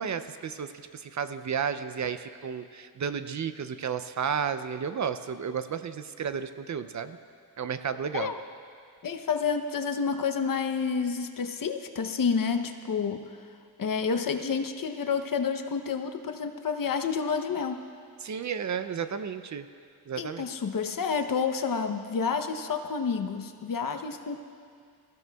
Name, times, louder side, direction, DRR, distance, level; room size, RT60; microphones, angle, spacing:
voice 1, 0.0-7.2 7.6-8.3 18.2-19.7 20.1-20.5, right 7 dB, 50° right, 11 dB, 0.5 m, -32 dB
voice 2, 9.0-13.3 13.8-17.8 20.2-24.4, left 6 dB, 55° left, 7 dB, 0.8 m, -29 dB
22.5 x 15.0 x 2.3 m, 2.2 s
wide cardioid pair, 125°, 39 cm